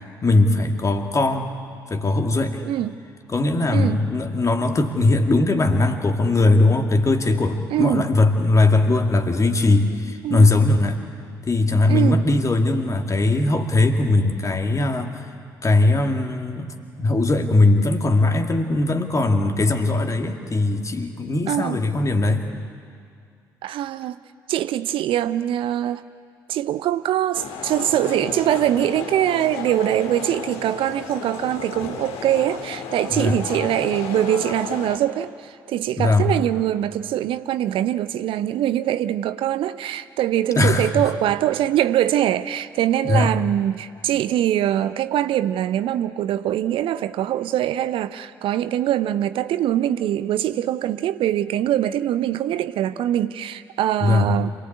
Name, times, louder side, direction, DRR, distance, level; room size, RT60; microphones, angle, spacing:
voice 1, 0.2-1.5 1.9-2.6 3.3-11.0 11.5-15.3 15.6-22.5 33.1-33.4 36.0-36.3 40.6-40.9 43.0-43.3 54.0-54.3, left 2 dB, 30° left, 5 dB, 2.2 m, -20 dB
voice 2, 7.7-8.1 10.2-10.5 11.9-12.2 21.5-21.8 23.6-24.2 24.5-26.0 26.5-54.5, right 12 dB, 55° right, 13 dB, 0.6 m, -23 dB
sound 1, 27.3-35.0, left 6 dB, 60° left, 1.9 m, -33 dB
26.5 x 18.5 x 8.7 m, 2.3 s
figure-of-eight pair, 45°, 11 cm